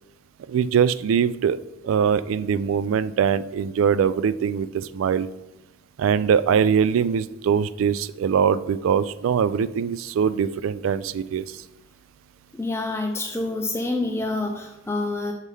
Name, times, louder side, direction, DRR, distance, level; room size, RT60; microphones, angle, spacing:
voice 1, 0.5-1.6 1.8-5.3 6.0-11.4, right 7 dB, 75° right, 15 dB, 0.3 m, -22 dB
voice 2, 12.6-15.3, left 2 dB, 15° left, 3 dB, 0.4 m, -27 dB
6.5 x 5.4 x 3.3 m, 0.97 s
head